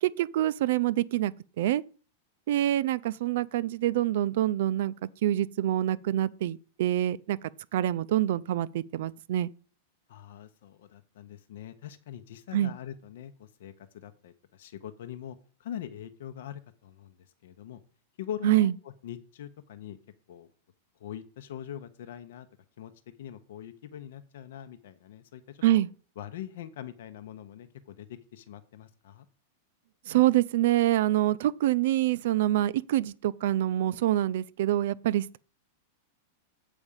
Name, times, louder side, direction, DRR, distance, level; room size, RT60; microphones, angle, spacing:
voice 1, 0.0-1.8 2.5-7.4 7.7-9.5 12.5-12.7 18.4-18.7 25.6-25.9 30.1-35.4, right 13 dB, 55° right, 0.4 m, -26 dB
voice 2, 10.1-17.8 18.2-20.0 20.3-20.5 21.0-22.5 22.8-22.9 23.2-25.8 26.2-29.3, left 10 dB, 60° left, 0.8 m, -43 dB
8.0 x 5.0 x 7.2 m
supercardioid pair, 175°, 0 cm